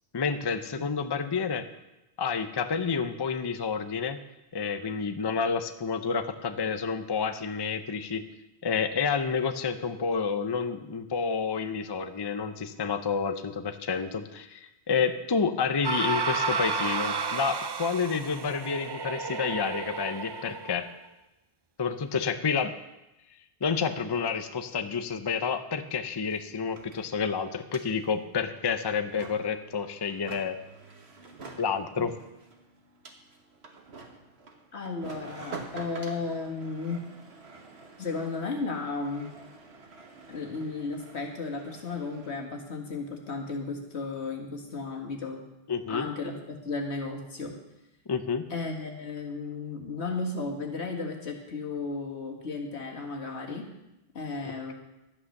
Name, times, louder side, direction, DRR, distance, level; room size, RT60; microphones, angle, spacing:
voice 1, 0.1-1.7 2.2-4.2 4.5-8.2 8.6-20.9 21.8-22.7 23.6-30.6 31.6-32.1 45.7-46.1 48.1-48.5 54.4-54.7, left 5 dB, 30° left, 9 dB, 0.6 m, -29 dB
sound 1, 15.8-20.9, right 4 dB, 40° right, 0.3 m, -31 dB
sound 2, 25.6-25.7 25.8-42.5, right 4 dB, 75° right, 1.6 m, -48 dB
voice 2, 34.7-37.0 38.0-39.3 40.3-45.4 45.9-46.3 46.6-47.5 48.5-53.7 54.1-54.7, left 3 dB, 85° left, 1 dB, 2.1 m, -34 dB
12.0 x 8.5 x 6.5 m, 0.95 s
omnidirectional pair, 1.1 m